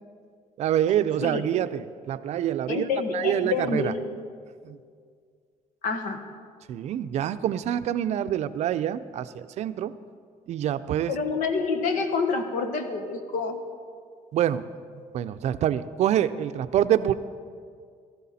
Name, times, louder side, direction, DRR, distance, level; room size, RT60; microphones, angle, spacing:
voice 1, 0.6-2.9 3.1-3.9 4.6-4.8 6.7-9.9 10.5-11.1 14.3-14.6 15.1-17.1, right 11 dB, 55° right, 12 dB, 0.5 m, -26 dB
voice 2, 2.7-4.0 5.8-6.2 11.1-13.6, left 4 dB, 80° left, 6 dB, 1.5 m, -27 dB
18.0 x 13.5 x 4.2 m, 2.1 s
cardioid pair, 140°, 13 cm